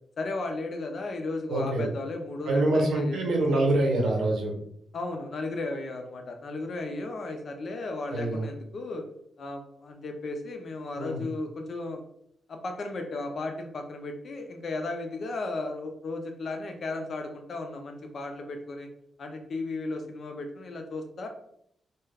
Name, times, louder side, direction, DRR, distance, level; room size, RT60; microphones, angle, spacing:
voice 1, 0.2-3.4 4.9-9.0 9.4-12.0 12.5-18.9 19.2-21.3, left 2 dB, 50° left, 4 dB, 0.4 m, -35 dB
voice 2, 1.5-1.9 2.5-4.5 8.1-8.5 10.9-11.2, right 2 dB, 80° right, 0 dB, 0.6 m, -25 dB
2.3 x 2.1 x 3.2 m, 0.71 s
wide cardioid pair, 145°, 0 cm